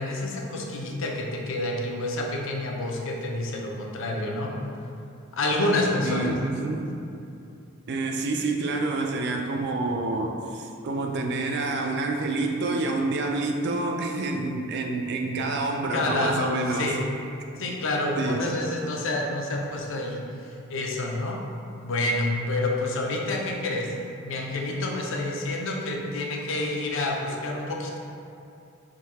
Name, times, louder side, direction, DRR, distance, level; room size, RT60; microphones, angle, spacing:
voice 1, 0.0-4.5 5.3-6.4 15.8-17.0 17.6-20.2 20.7-21.4 21.8-23.9 24.2-28.0, left 2 dB, 65° left, 0 dB, 0.5 m, -28 dB
voice 2, 6.0-6.9 7.9-16.9 18.2-18.4, right 3 dB, 55° right, 2 dB, 0.4 m, -28 dB
3.8 x 2.6 x 4.1 m, 2.6 s
head